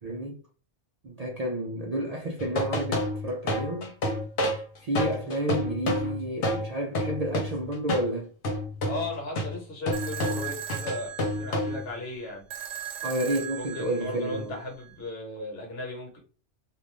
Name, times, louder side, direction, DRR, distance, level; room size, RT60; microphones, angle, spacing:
voice 1, 0.0-0.4 1.0-3.9 4.8-8.3 13.0-14.6, right 1 dB, 55° right, 0.4 m, -30 dB
sound 1, 2.4-8.1 8.4-12.0, left 1 dB, 80° left, 1.1 m, -30 dB
voice 2, 8.9-12.5 13.5-16.2, left 2 dB, 60° left, 1.3 m, -36 dB
sound 2, 9.9-14.9, right 11 dB, 90° right, 0.9 m, -39 dB
2.5 x 2.4 x 3.2 m
omnidirectional pair, 1.2 m